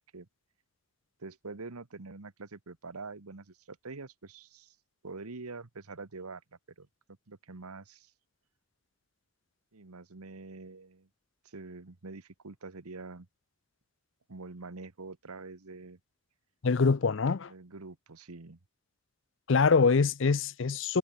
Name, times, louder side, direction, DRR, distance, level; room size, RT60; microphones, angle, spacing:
voice 1, 1.2-4.7 5.0-6.4 6.8-6.9 7.3-8.1 9.7-11.1 11.4-13.3 14.3-16.0 17.5-18.6, right 3 dB, 90° right, 1.3 m, -45 dB
voice 2, 16.6-17.5 19.5-21.0, left 4 dB, 60° left, 0.5 m, -24 dB
head